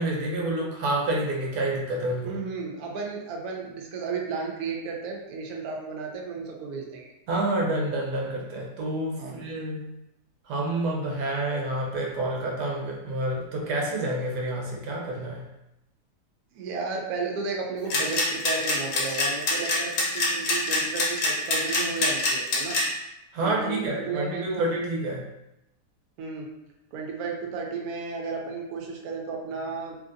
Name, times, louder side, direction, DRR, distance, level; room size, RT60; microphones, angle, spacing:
voice 1, 0.0-2.3 7.3-9.9 10.5-15.4 23.3-25.3, right 1 dB, 90° right, -1 dB, 1.3 m, -28 dB
voice 2, 2.2-7.1 9.2-9.4 16.5-22.8 23.4-24.7 26.2-26.5 26.9-30.0, right 4 dB, 70° right, 0 dB, 1.0 m, -33 dB
sound 1, 17.9-22.8, left 3 dB, 85° left, 1.3 m, -24 dB
3.2 x 2.6 x 2.5 m, 0.88 s
omnidirectional pair, 1.8 m